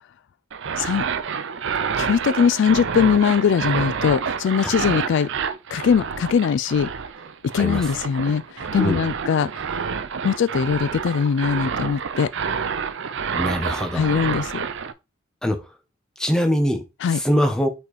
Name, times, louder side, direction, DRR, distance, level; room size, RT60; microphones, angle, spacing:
sound 1, 0.5-14.9, right 6 dB, 65° right, 0.6 m, -28 dB
voice 1, 2.0-5.3 5.7-6.9 7.5-9.5 10.2-12.3 13.9-14.7 17.0-17.2, left 7 dB, 60° left, 0.3 m, -21 dB
voice 2, 13.3-14.1 15.4-15.6 16.2-16.8 17.1-17.7, equal, 5° left, 1.0 m, -22 dB
5.4 x 4.4 x 4.1 m
head